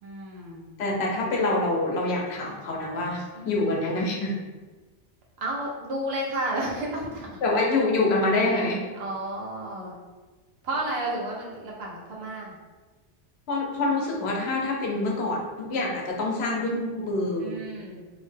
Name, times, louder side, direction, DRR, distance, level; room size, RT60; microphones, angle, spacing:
voice 1, 0.0-0.7 3.3-3.6 5.4-7.4 9.0-10.0 10.6-12.5 17.4-18.1, right 1 dB, 80° right, -2 dB, 0.9 m, -32 dB
voice 2, 0.8-4.3 7.4-8.8 13.5-17.5, left 2 dB, 80° left, -1 dB, 0.9 m, -26 dB
2.7 x 2.1 x 3.2 m, 1.3 s
omnidirectional pair, 1.1 m